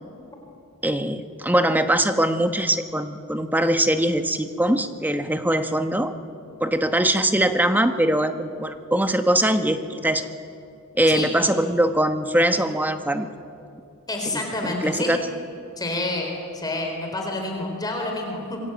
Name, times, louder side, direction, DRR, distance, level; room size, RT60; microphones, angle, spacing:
voice 1, 0.8-6.1 6.6-10.3 10.9-13.3 14.3-15.2, right 1 dB, 10° right, 8 dB, 1.1 m, -22 dB
voice 2, 14.1-15.1 15.8-18.6, left 2 dB, 20° left, 1 dB, 4.0 m, -28 dB
25.5 x 23.0 x 9.0 m, 2.6 s
head